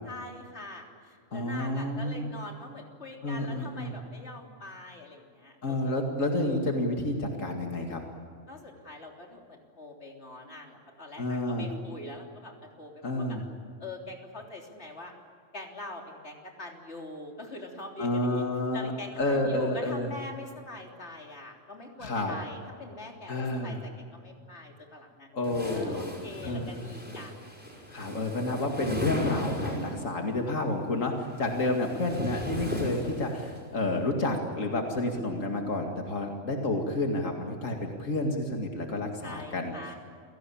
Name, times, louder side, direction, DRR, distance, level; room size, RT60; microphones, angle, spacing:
voice 1, 0.0-5.9 8.5-13.4 13.8-15.1 15.5-18.4 18.7-25.3 25.7-27.5 28.0-28.1 39.2-39.9, left 2 dB, 55° left, 1 dB, 3.8 m, -44 dB
voice 2, 1.3-2.2 3.2-3.9 5.6-8.0 11.2-11.7 13.0-13.5 18.0-20.1 22.0-22.3 23.3-23.8 25.3-26.1 26.4-27.2 27.9-39.7, left 2 dB, 90° left, 2 dB, 2.6 m, -30 dB
sound 1, 25.4-30.1 31.1-33.6, left 1 dB, 5° right, 5.6 m, -36 dB
29.0 x 18.0 x 8.6 m, 2.2 s
omnidirectional pair, 1.3 m